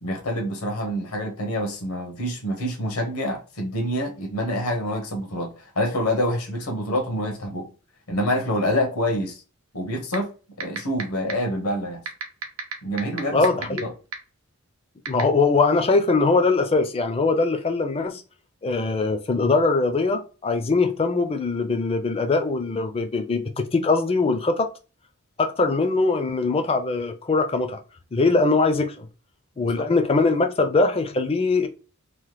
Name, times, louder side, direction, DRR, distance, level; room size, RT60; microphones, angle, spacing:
voice 1, 0.0-7.7 8.1-9.4 9.7-12.0 12.8-13.9 29.8-29.9, equal, 75° left, 0.9 m, -27 dB
sound 1, 10.1-10.2 10.6-11.0 11.3-11.4 12.1-13.8 14.1-14.2 15.1-15.2, right 7 dB, 65° right, 0.7 m, -28 dB
voice 2, 13.3-13.8 15.1-18.2 18.6-24.7 25.4-27.8 28.1-29.1 29.6-31.7, left 3 dB, 25° left, 0.4 m, -22 dB
3.0 x 2.1 x 3.2 m
head